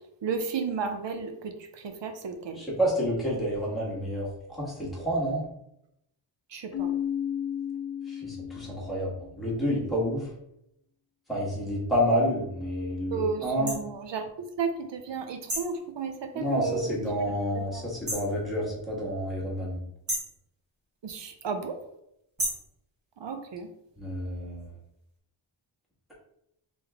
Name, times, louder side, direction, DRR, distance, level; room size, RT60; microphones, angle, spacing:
voice 1, 0.2-2.6 6.5-6.9 13.1-14.3 14.6-17.1 17.6-17.8 21.0-21.8 23.2-23.7, right 5 dB, 60° right, 6 dB, 0.7 m, -33 dB
voice 2, 2.5-5.4 8.1-10.3 11.3-13.7 16.3-19.8 24.0-24.7, equal, ahead, -7 dB, 1.5 m, -29 dB
Keyboard (musical), 6.7-9.4, left 9 dB, 30° left, 0.7 m, -33 dB
sound 1, 13.7-13.8 15.5-15.8 18.1-18.3 20.1-20.4 22.4-22.7, right 1 dB, 35° right, 1.5 m, -31 dB
3.6 x 3.5 x 3.4 m, 0.79 s
wide cardioid pair, 150°, 49 cm